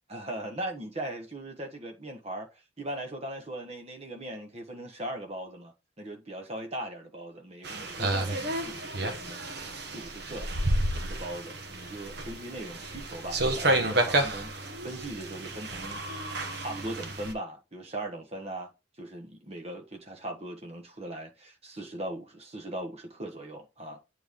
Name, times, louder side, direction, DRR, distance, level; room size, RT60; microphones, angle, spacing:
voice 1, 0.1-2.5 2.8-9.5 9.8-10.5 11.0-14.5 14.8-16.0 16.5-18.7 19.0-24.0, right 1 dB, 35° right, 1.3 m, -39 dB
sound 1, 7.6-17.3, right 1 dB, 60° right, 1.2 m, -31 dB
8.9 x 3.3 x 3.7 m
head